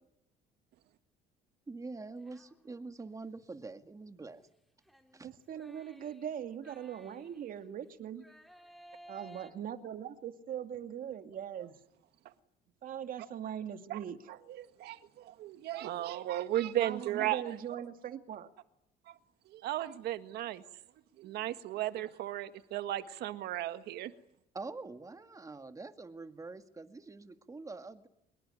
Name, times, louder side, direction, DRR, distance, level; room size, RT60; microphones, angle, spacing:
voice 1, 1.7-4.4 5.1-5.3 24.5-28.1, right 3 dB, 20° right, 2.1 m, -45 dB
sound 1, 2.2-3.0 4.9-7.7 8.2-9.5, equal, ahead, 3.2 m, -57 dB
voice 2, 5.2-8.2 9.1-11.8 12.8-14.2 16.8-18.5, right 9 dB, 55° right, 2.3 m, -41 dB
voice 3, 14.5-17.4 19.1-19.2 19.5-20.6 21.2-24.1, right 13 dB, 80° right, 1.7 m, -35 dB
25.0 x 21.5 x 9.9 m
cardioid pair, 110°, 17 cm